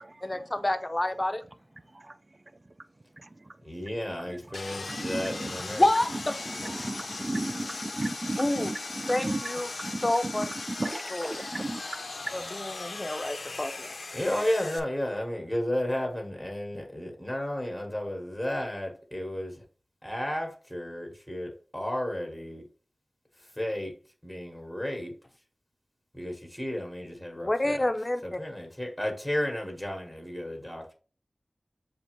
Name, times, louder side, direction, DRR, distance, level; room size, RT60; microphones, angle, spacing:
voice 1, 0.2-1.4 5.6-6.4 8.4-8.7 9.1-9.7 10.0-10.5 11.1-11.4 12.3-14.0 27.3-28.4, left 1 dB, 30° left, 0.5 m, -28 dB
voice 2, 3.6-5.9 14.1-19.6 20.0-22.6 23.6-23.9 24.2-25.1 26.1-27.8 28.2-30.9, left 1 dB, ahead, 1.1 m, -33 dB
Sawing, 4.5-14.8, left 3 dB, 85° left, 0.5 m, -38 dB
voice 3, 4.9-5.5 6.5-9.4 9.8-12.3, right 2 dB, 40° right, 0.3 m, -35 dB
6.8 x 2.5 x 3.0 m
wide cardioid pair, 65°, 0 cm